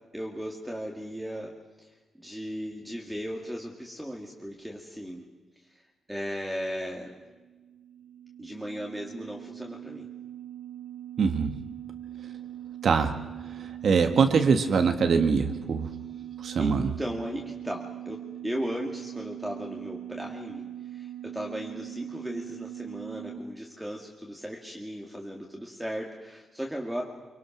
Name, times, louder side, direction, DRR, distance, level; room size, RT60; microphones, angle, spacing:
voice 1, 0.1-1.5 1.8-5.3 5.6-5.8 6.1-7.2 8.4-10.1 16.6-27.0, equal, 5° right, -1 dB, 2.2 m, -36 dB
sound 1, 7.2-23.4, right 12 dB, 30° right, 2.4 m, -41 dB
voice 2, 11.2-11.6 12.8-13.2 13.5-15.9 16.4-16.9, right 5 dB, 55° right, 6 dB, 1.5 m, -23 dB
25.5 x 24.5 x 6.1 m, 1.2 s
wide cardioid pair, 145°, 0 cm